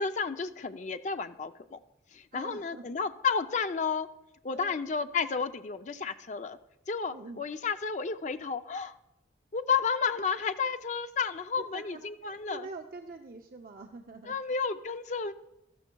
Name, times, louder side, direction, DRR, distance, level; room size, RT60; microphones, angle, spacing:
voice 1, 0.0-1.8 2.1-4.1 4.4-6.6 6.9-8.9 9.5-12.6 14.3-15.3, left 5 dB, 40° left, 10 dB, 0.4 m, -32 dB
voice 2, 2.3-2.8 4.5-4.7 7.1-7.4 11.6-14.4, right 3 dB, 50° right, 4 dB, 0.5 m, -45 dB
13.5 x 13.5 x 2.3 m, 0.93 s
head